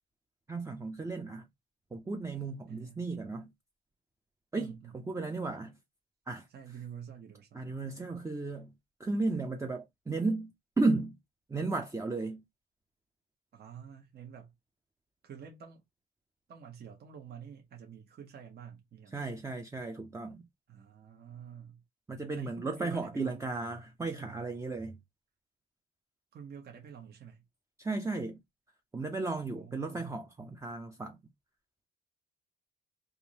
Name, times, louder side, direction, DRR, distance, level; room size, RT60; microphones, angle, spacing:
voice 1, 0.5-1.5 1.9-3.5 4.5-5.8 6.3-6.5 7.5-8.7 9.0-10.5 10.8-11.2 11.5-12.4 19.1-20.4 22.1-25.0 27.8-28.4 28.9-31.2, right 3 dB, 15° right, 0.6 m, -34 dB
voice 2, 2.7-3.3 4.5-4.9 6.5-7.7 13.5-14.5 15.2-15.8 16.5-19.2 20.7-21.8 22.3-23.6 24.1-24.5 26.3-27.4 29.5-30.1, right 8 dB, 55° right, 1.0 m, -49 dB
3.6 x 2.6 x 2.9 m
cardioid pair, 90°, 20 cm